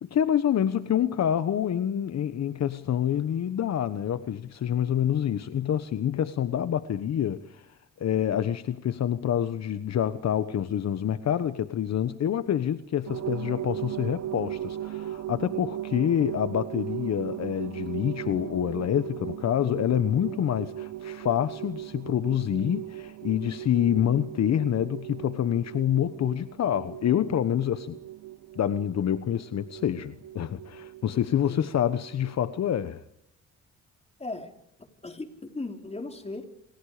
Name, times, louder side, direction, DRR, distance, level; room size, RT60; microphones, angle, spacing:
voice 1, 0.0-7.7 8.0-28.0 28.5-33.0, left 10 dB, 60° left, 1.3 m, -27 dB
sound 1, 13.1-32.8, right 13 dB, 60° right, 1.1 m, -38 dB
voice 2, 34.2-34.5 34.8-36.5, left 2 dB, 20° left, 4.5 m, -37 dB
28.5 x 28.0 x 5.1 m
cardioid pair, 90°, 30 cm